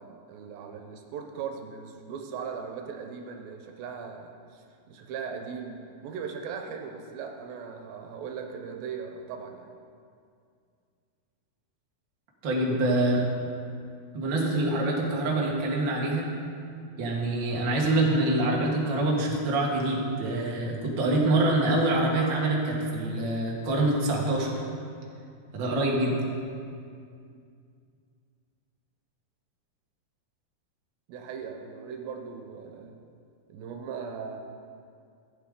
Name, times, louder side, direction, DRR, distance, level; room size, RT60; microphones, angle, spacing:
voice 1, 0.0-9.7 31.1-33.0 33.5-34.4, right 6 dB, 80° right, 4 dB, 2.6 m, -39 dB
voice 2, 12.4-13.2 14.1-16.3 17.0-24.5 25.5-26.2, right 2 dB, 50° right, -3 dB, 1.5 m, -25 dB
15.0 x 8.9 x 3.7 m, 2.3 s
omnidirectional pair, 4.2 m